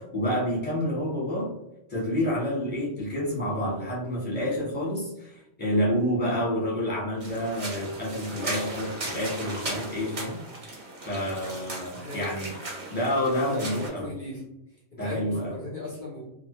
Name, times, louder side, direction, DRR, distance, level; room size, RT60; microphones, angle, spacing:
voice 1, 0.0-1.5 1.9-10.4 10.6-12.5 12.9-14.1 15.0-15.5, equal, 10° left, -7 dB, 0.8 m, -29 dB
sound 1, 7.2-13.9, right 2 dB, 45° right, 0.7 m, -37 dB
voice 2, 11.2-11.6 11.9-12.3 13.5-14.4 14.9-16.2, left 2 dB, 55° left, -3 dB, 0.5 m, -37 dB
2.1 x 2.0 x 2.9 m, 0.86 s
omnidirectional pair, 1.3 m